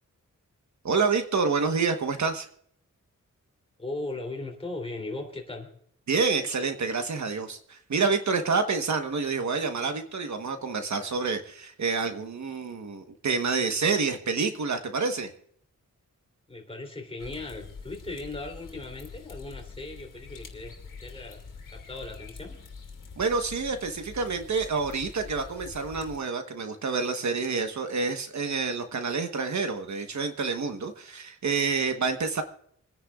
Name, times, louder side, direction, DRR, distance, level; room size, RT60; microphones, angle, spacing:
voice 1, 0.8-2.5 6.1-15.3 23.2-32.4, right 4 dB, 60° right, 7 dB, 1.2 m, -28 dB
voice 2, 3.8-5.7 16.5-20.7 21.0-21.4 21.7-22.6, left 2 dB, 20° left, 2 dB, 3.1 m, -38 dB
sound 1, 17.2-26.2, left 5 dB, 75° left, 2.6 m, -45 dB
28.0 x 10.0 x 2.4 m, 0.66 s
wide cardioid pair, 125°, 32 cm